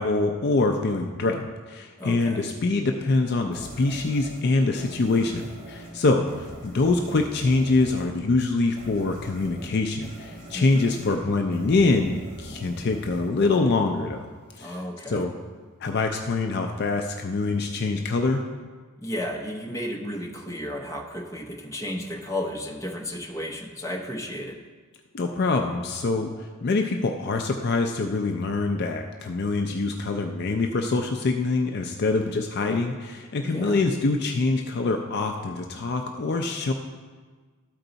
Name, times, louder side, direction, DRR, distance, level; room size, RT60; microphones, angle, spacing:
voice 1, 0.0-14.3 14.6-14.8 15.1-15.3 15.8-18.4 25.1-26.3 26.6-36.7, left 3 dB, 45° left, 4 dB, 0.4 m, -24 dB
voice 2, 2.0-2.5 10.5-10.9 14.6-15.2 19.0-24.6 33.4-33.8, left 1 dB, 15° left, 0 dB, 0.8 m, -33 dB
sound 1, 3.5-14.3, equal, 25° right, 2.7 m, -44 dB
13.0 x 4.6 x 3.9 m, 1.4 s
head